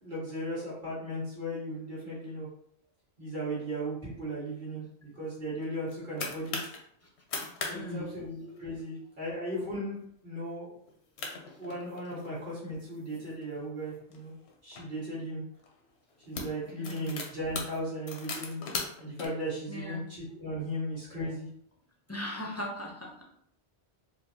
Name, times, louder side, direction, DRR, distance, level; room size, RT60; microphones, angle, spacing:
voice 1, 0.0-2.5 3.2-6.7 7.7-10.0 10.2-10.7 11.3-14.3 14.6-15.4 16.3-18.6 19.0-21.5, equal, 50° right, -8 dB, 1.9 m, -36 dB
sound 1, 5.6-6.8 7.2-7.8 8.0-8.1 8.5-8.8 9.4-9.6 10.1-10.2 10.9-11.0 11.2-12.4 13.0-14.8 15.6-15.8 16.1-19.3, left 4 dB, 80° left, 1.0 m, -39 dB
voice 2, 7.7-8.1 16.8-17.2 19.7-20.1 22.1-23.2, left 1 dB, 20° left, -1 dB, 0.5 m, -38 dB
4.3 x 2.4 x 2.7 m, 0.69 s
omnidirectional pair, 1.1 m